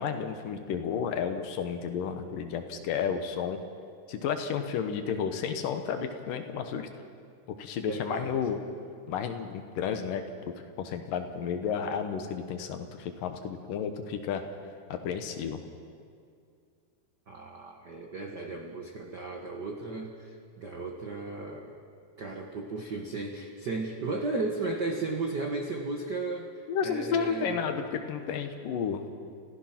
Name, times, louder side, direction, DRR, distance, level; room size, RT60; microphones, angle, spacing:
voice 1, 0.0-3.6 4.1-6.9 7.6-8.6 9.1-10.2 10.8-14.4 14.9-15.6 26.7-29.1, left 7 dB, 70° left, 7 dB, 2.7 m, -32 dB
voice 2, 7.9-8.4 17.3-21.8 22.2-26.5 26.8-27.6, right 3 dB, 75° right, 1 dB, 0.9 m, -35 dB
29.5 x 15.0 x 5.9 m, 2.4 s
omnidirectional pair, 4.2 m